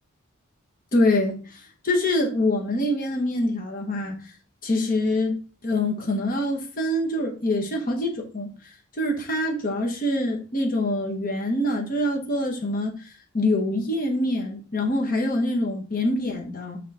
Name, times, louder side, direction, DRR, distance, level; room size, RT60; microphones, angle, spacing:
voice 1, 0.9-4.2 4.6-8.5 9.0-16.8, left 1 dB, 45° left, 1.3 m, -25 dB
6.5 x 4.1 x 4.3 m
head